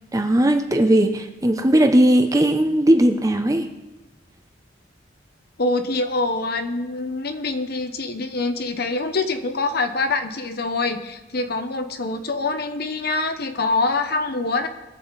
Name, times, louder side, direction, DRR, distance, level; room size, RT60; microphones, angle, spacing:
voice 1, 0.1-3.7, right 1 dB, 15° right, 6 dB, 0.8 m, -18 dB
voice 2, 5.6-14.7, left 3 dB, 50° left, 8 dB, 1.0 m, -25 dB
21.5 x 7.8 x 4.1 m, 1.0 s
head